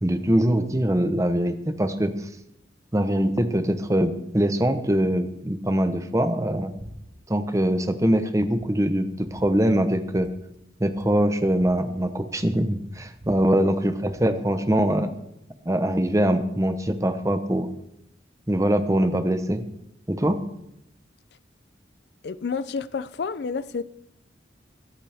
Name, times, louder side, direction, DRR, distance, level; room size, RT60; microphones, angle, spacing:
voice 1, 0.0-2.1 2.9-6.7 7.3-10.3 10.8-15.1 15.7-17.7 18.5-19.6 20.1-20.4, right 1 dB, 15° right, 9 dB, 0.8 m, -23 dB
sound 1, 6.7-6.9 7.2-7.8 8.1-8.2 8.5-9.4 10.1-10.3 10.5-10.6 10.8-12.5 12.8-14.3, equal, 40° right, 1.8 m, -47 dB
voice 2, 22.2-23.8, left 5 dB, 65° left, 15 dB, 0.4 m, -30 dB
24.5 x 8.3 x 3.5 m, 0.81 s
head